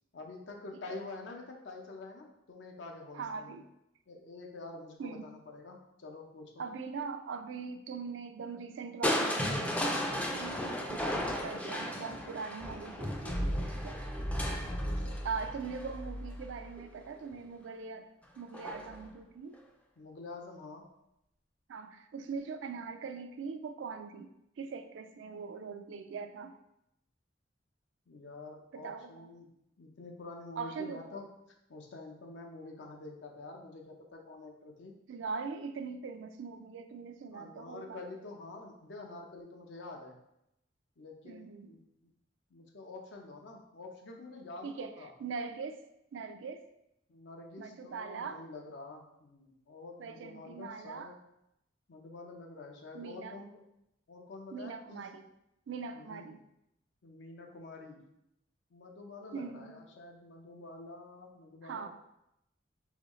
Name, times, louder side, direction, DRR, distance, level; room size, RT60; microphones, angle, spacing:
voice 1, 0.1-3.5 4.1-6.6 14.4-15.1 20.0-20.9 28.1-29.5 29.8-31.3 31.7-34.9 37.3-40.2 41.0-42.1 42.5-45.1 47.1-51.2 51.9-53.6 54.1-55.0 55.9-56.3 57.0-58.0 58.7-61.9, left 3 dB, 70° left, 2 dB, 0.6 m, -47 dB
voice 2, 3.1-3.7 5.0-5.2 6.6-14.0 15.2-18.1 18.4-19.6 21.7-26.5 28.7-29.3 30.6-31.0 35.1-38.0 41.2-41.7 44.6-45.8 46.1-46.6 47.6-48.4 50.0-51.1 52.9-53.4 54.5-55.3 55.7-56.4 59.3-59.7 61.6-61.9, right 5 dB, 90° right, 8 dB, 0.4 m, -41 dB
Crushing, 9.0-17.0 18.5-19.0 19.5-19.6, equal, 5° left, 0.3 m, -34 dB
4.0 x 3.1 x 3.0 m, 0.83 s
head